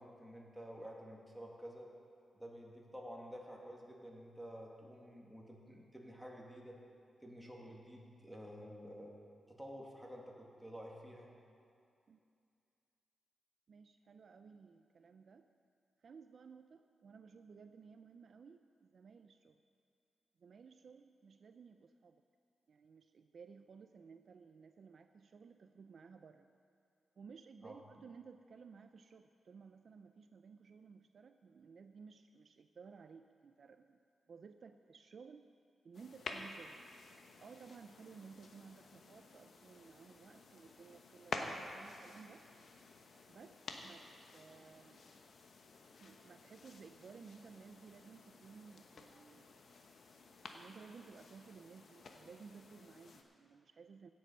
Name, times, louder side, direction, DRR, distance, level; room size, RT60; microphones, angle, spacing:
voice 1, 0.0-1.9 2.3-6.8 7.2-9.1 9.5-11.3 27.6-27.8, equal, 5° right, -2 dB, 2.2 m, -51 dB
voice 2, 13.7-15.5 16.0-19.6 20.4-22.2 22.7-26.5 27.2-34.0 34.3-35.5 35.8-36.8 37.4-42.4 43.3-44.1 44.3-45.0 46.0-49.5 50.5-54.1, right 5 dB, 60° right, 8 dB, 0.4 m, -57 dB
sound 1, 35.9-53.2, left 3 dB, 60° left, 1.1 m, -51 dB
16.5 x 7.5 x 5.5 m, 2.5 s
cardioid pair, 90°, 0 cm